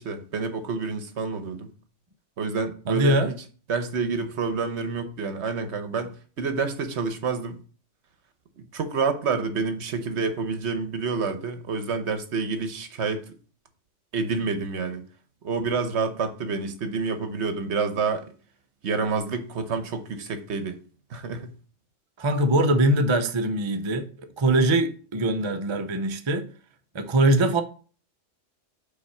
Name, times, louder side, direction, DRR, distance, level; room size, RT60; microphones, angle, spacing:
voice 1, 0.0-1.7 2.4-3.3 3.7-6.1 6.4-7.6 8.6-13.3 14.1-15.0 15.4-18.3 18.8-20.8 21.1-21.5, right 4 dB, 70° right, 1.1 m, -28 dB
voice 2, 2.9-3.3 22.2-26.5 26.9-27.6, right 1 dB, 35° right, 0.5 m, -22 dB
5.6 x 4.2 x 5.6 m
omnidirectional pair, 1.2 m